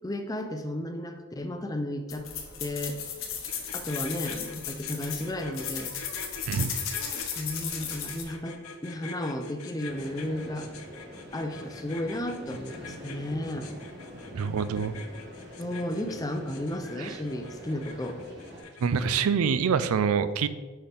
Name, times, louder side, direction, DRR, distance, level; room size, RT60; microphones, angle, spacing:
voice 1, 0.0-2.3 2.6-3.1 3.7-5.9 7.4-10.7 11.3-13.7 15.6-18.2, left 1 dB, 15° left, 6 dB, 0.4 m, -33 dB
sound 1, 2.1-8.2, left 7 dB, 65° left, 1.0 m, -35 dB
sound 2, 3.5-19.3, left 5 dB, 85° left, 0.7 m, -45 dB
sound 3, 9.8-18.6, equal, 50° right, 2.0 m, -45 dB
voice 2, 14.3-14.9 17.0-17.2 18.8-20.5, right 6 dB, 85° right, 13 dB, 0.4 m, -26 dB
6.5 x 5.6 x 3.4 m, 1.3 s
head